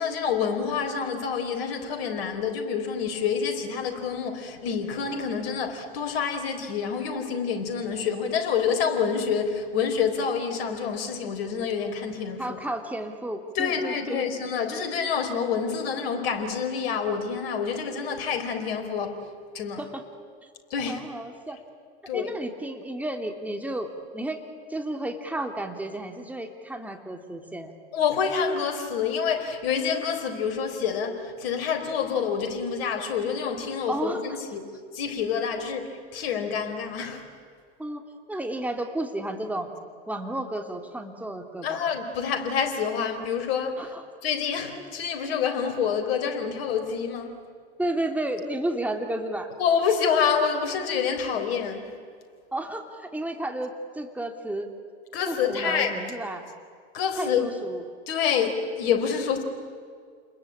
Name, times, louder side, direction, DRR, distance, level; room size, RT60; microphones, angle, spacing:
voice 1, 0.0-12.6 13.6-19.2 19.5-19.8 20.7-21.0 22.1-22.3 27.9-37.2 41.6-43.9 44.2-47.4 49.6-51.9 55.1-55.9 56.9-57.5 58.1-59.4, left 6 dB, 65° left, 6 dB, 4.1 m, -27 dB
voice 2, 12.4-14.3 19.8-20.0 20.4-20.5 20.9-21.6 22.1-24.4 24.7-27.8 33.9-34.2 37.8-38.0 38.3-39.8 40.1-41.8 43.8-44.0 47.8-49.5 52.5-54.7 55.3-56.4 57.2-57.8, right 1 dB, 5° right, 4 dB, 3.1 m, -32 dB
29.0 x 21.5 x 8.8 m, 2.1 s
hypercardioid pair, 90°, 33 cm